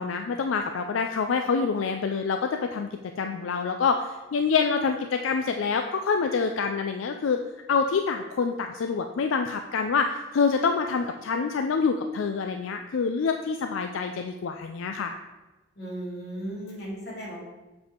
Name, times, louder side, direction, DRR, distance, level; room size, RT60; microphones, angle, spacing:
voice 1, 0.0-2.9 3.2-7.4 7.7-15.1, left 5 dB, 85° left, 5 dB, 0.4 m, -26 dB
voice 2, 15.8-17.4, right 1 dB, 55° left, -5 dB, 2.5 m, -36 dB
6.9 x 5.3 x 4.4 m, 1.1 s
head